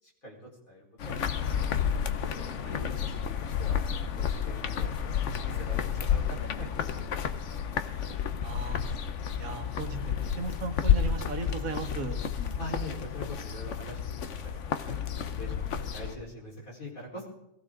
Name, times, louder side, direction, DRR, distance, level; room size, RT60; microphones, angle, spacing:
voice 1, 0.0-1.5 2.4-6.9 7.1-7.6 12.6-17.3, equal, 85° left, -3 dB, 4.8 m, -44 dB
sound 1, 1.0-16.1, left 8 dB, 65° left, 1.2 m, -31 dB
voice 2, 8.4-8.8 9.4-10.0 10.4-12.2, right 3 dB, 80° right, 5 dB, 1.9 m, -36 dB
22.0 x 15.5 x 3.8 m, 0.84 s
omnidirectional pair, 1.4 m